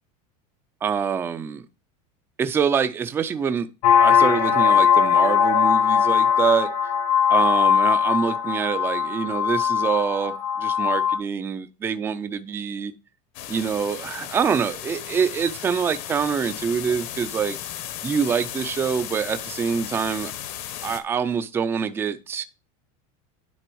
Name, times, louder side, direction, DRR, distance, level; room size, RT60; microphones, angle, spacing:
voice 1, 0.8-1.6 2.4-3.7 4.0-6.7 7.3-12.9 13.5-17.6 18.0-20.3 20.8-22.4, right 6 dB, 10° right, 0.3 m, -25 dB
sound 1, 3.8-11.2, left 8 dB, 70° left, 1.6 m, -20 dB
sound 2, 13.3-21.0, left 11 dB, 55° left, 0.9 m, -35 dB
10.0 x 3.4 x 4.6 m
supercardioid pair, 160°, 21 cm